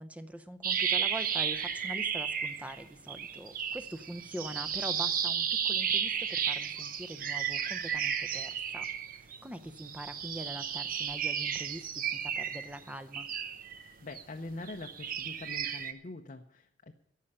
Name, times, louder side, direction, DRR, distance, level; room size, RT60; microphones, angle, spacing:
voice 1, 0.0-13.3, right 1 dB, 10° right, 11 dB, 0.6 m, -43 dB
sound 1, 0.6-2.8 3.1-9.4 9.8-14.2 14.7-15.9, right 8 dB, 50° right, 0.8 m, -33 dB
voice 2, 13.7-16.9, left 2 dB, 45° left, 4 dB, 0.6 m, -44 dB
14.0 x 5.7 x 9.7 m, 0.82 s
head